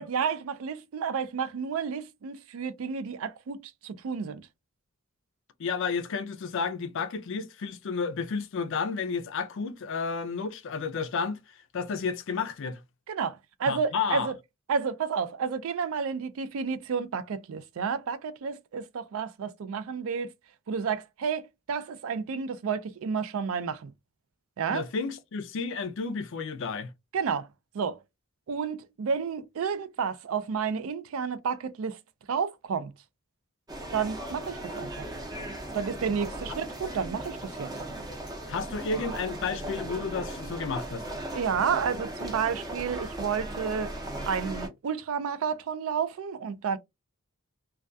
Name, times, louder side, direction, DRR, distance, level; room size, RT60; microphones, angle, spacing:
voice 1, 0.0-3.6 3.8-4.4 13.1-14.3 14.7-20.3 20.7-23.9 24.6-24.9 27.1-27.5 27.7-28.0 28.5-32.0 32.3-32.9 33.9-35.0 35.7-37.7 41.3-43.9 44.3-46.8, right 6 dB, 65° right, 0.4 m, -31 dB
voice 2, 5.6-11.4 11.7-12.8 13.7-14.3 24.7-26.9 38.5-41.0, left 5 dB, 60° left, 0.4 m, -31 dB
sound 1, 33.7-44.7, right 1 dB, 15° right, 0.6 m, -37 dB
2.2 x 2.2 x 2.5 m
head